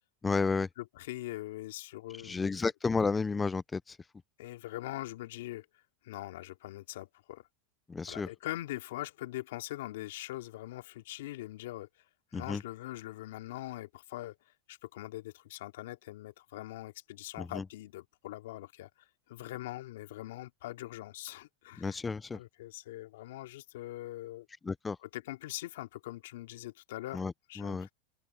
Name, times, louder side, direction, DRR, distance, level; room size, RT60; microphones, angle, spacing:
voice 1, 0.2-0.7 2.2-4.0 7.9-8.3 12.3-12.6 17.4-17.6 21.8-22.4 24.7-25.0 27.1-27.9, left 4 dB, 15° left, 0.5 m, -32 dB
voice 2, 0.8-2.7 4.4-5.7 6.0-7.4 8.1-11.9 12.3-14.4 14.7-22.0 22.3-24.5 25.0-27.2 27.5-27.9, left 16 dB, 75° left, 2.5 m, -42 dB
open air
hypercardioid pair, 105°, 0 cm